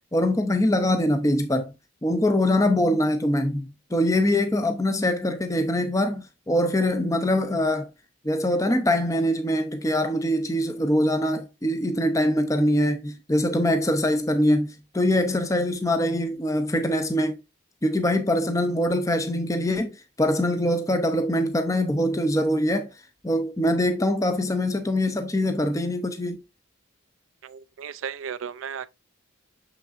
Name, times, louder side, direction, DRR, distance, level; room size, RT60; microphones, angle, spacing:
voice 1, 0.1-1.7 2.0-7.9 8.2-17.4 17.8-22.9 23.2-26.4, left 1 dB, 15° left, 0.6 m, -23 dB
voice 2, 27.4-28.9, right 7 dB, 85° right, 0.4 m, -35 dB
6.8 x 5.8 x 2.5 m
head